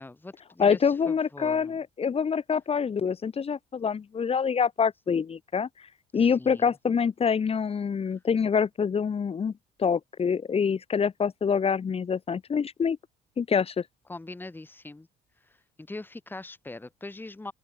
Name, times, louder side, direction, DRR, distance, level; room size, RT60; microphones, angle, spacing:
voice 1, 0.0-1.8 6.1-6.7 14.1-15.1 15.4-17.5, left 2 dB, 10° left, 3.0 m, -42 dB
voice 2, 0.6-5.7 6.1-9.5 9.8-13.0 13.4-13.8, left 6 dB, 35° left, 3.7 m, -26 dB
open air
cardioid pair, 110°, 17 cm